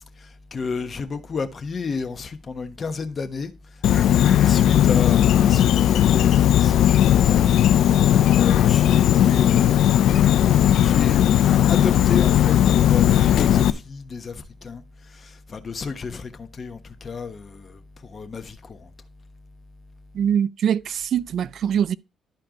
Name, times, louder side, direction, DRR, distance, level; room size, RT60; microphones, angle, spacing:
voice 1, 0.2-3.5 3.9-14.8 15.1-18.9, left 5 dB, 40° left, 1.1 m, -32 dB
Insect, 3.8-13.7, left 11 dB, 80° left, 0.4 m, -17 dB
voice 2, 20.1-22.0, right 8 dB, 65° right, 0.3 m, -23 dB
12.0 x 4.4 x 3.8 m
cardioid pair, 90°, 0 cm